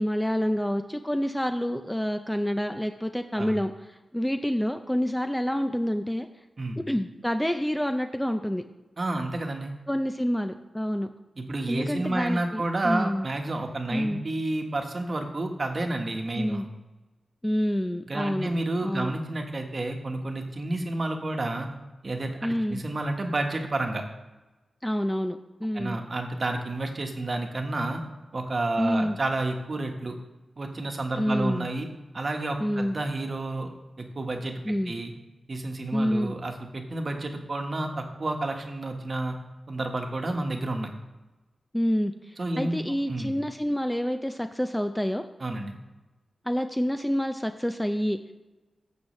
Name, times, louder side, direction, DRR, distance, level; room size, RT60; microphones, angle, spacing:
voice 1, 0.0-3.7 4.1-6.3 6.9-8.6 9.9-11.1 11.7-13.3 13.9-14.2 16.4-16.7 17.4-18.5 18.8-19.1 22.4-22.8 24.8-26.0 28.8-29.2 31.2-31.7 32.6-33.0 34.7-34.9 35.9-36.3 41.7-45.2 46.5-48.3, equal, 5° left, 7 dB, 0.4 m, -28 dB
voice 2, 9.0-9.7 11.4-16.7 18.1-21.7 22.0-24.0 25.7-28.0 28.3-30.1 30.6-31.9 32.1-33.7 34.0-35.1 35.5-39.4 39.7-40.9 42.4-42.8 43.1-43.3 45.4-45.8, right 2 dB, 40° right, 4 dB, 1.2 m, -30 dB
15.0 x 6.3 x 3.1 m, 1.1 s
wide cardioid pair, 115°, 0 cm